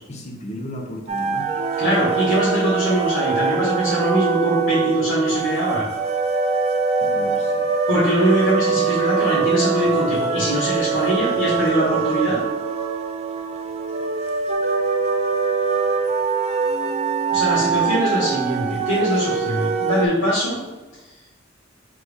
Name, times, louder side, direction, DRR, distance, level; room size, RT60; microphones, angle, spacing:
voice 1, 0.1-1.5 7.0-7.8 16.0-16.1, equal, 35° left, 1 dB, 0.7 m, -35 dB
sound 1, 1.1-20.1, right 5 dB, 35° right, 0.3 m, -23 dB
voice 2, 1.8-5.9 7.9-12.4 17.3-20.6, equal, 80° left, -9 dB, 1.2 m, -22 dB
4.0 x 3.3 x 3.5 m, 1.1 s
head